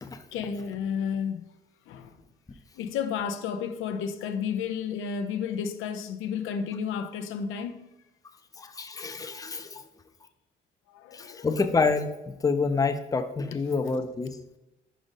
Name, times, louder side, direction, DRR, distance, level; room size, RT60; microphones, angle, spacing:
voice 1, 0.3-1.5 1.9-2.2 2.7-7.8 10.9-11.5 13.5-14.0, left 7 dB, 85° left, 0.5 m, -32 dB
voice 2, 8.6-9.8 11.1-12.1 12.4-14.4, left 4 dB, 15° left, 0.5 m, -27 dB
5.1 x 4.9 x 4.0 m
cardioid pair, 90°, 20 cm